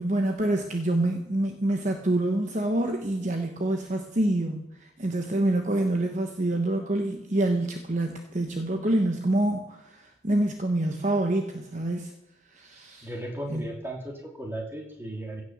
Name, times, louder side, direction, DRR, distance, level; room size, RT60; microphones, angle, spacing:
voice 1, 0.0-12.1 12.5-13.1 13.5-13.7, right 1 dB, 40° right, 4 dB, 1.1 m, -27 dB
voice 2, 13.0-15.4, right 1 dB, 15° right, 0 dB, 3.0 m, -36 dB
16.0 x 6.4 x 7.2 m, 0.94 s
head